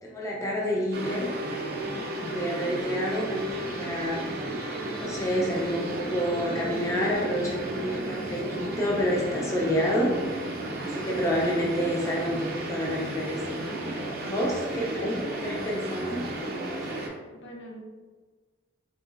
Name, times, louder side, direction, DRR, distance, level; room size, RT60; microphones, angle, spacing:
voice 1, 0.0-1.3 2.2-4.2 5.0-10.1 10.8-13.6 14.2-16.2, equal, 15° left, -3 dB, 0.4 m, -29 dB
sound 1, 0.9-17.1, right 1 dB, 55° right, 0.5 m, -33 dB
voice 2, 14.3-15.2 17.3-17.8, equal, 75° left, -2 dB, 0.6 m, -46 dB
3.8 x 2.2 x 2.4 m, 1.4 s
head